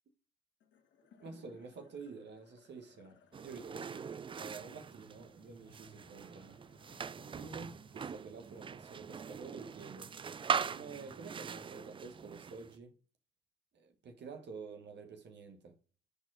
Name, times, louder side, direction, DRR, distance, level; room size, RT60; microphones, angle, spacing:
sound 1, 0.6-11.1, left 5 dB, 65° left, 1.4 m, -65 dB
voice 1, 1.2-3.2 3.4-4.1 4.3-6.6 7.1-10.1 10.6-13.0 13.7-15.8, right 4 dB, 60° right, 1.3 m, -49 dB
sound 2, 3.3-12.8, right 6 dB, 25° right, 0.3 m, -41 dB
5.1 x 4.4 x 6.1 m
cardioid pair, 90°, 20 cm